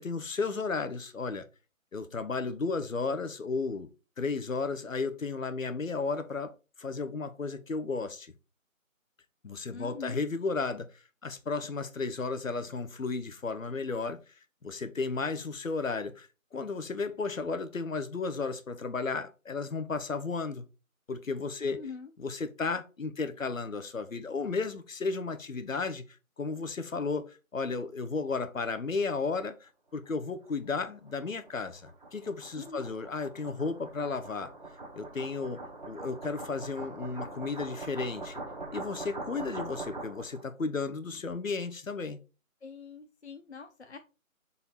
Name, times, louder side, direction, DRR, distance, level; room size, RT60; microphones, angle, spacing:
voice 1, 0.0-1.5 1.9-3.9 4.2-6.5 6.8-8.3 9.4-14.2 14.6-20.6 21.1-21.8 22.2-26.0 26.4-34.5 35.0-38.4 38.7-42.2, left 4 dB, 70° left, 1.0 m, -34 dB
voice 2, 9.7-10.2 21.6-22.1 32.6-32.9 42.6-44.0, left 5 dB, 55° left, 0.6 m, -44 dB
sound 1, 30.4-40.4, right 2 dB, 35° right, 1.1 m, -43 dB
5.3 x 4.2 x 4.2 m
figure-of-eight pair, 170°, 42 cm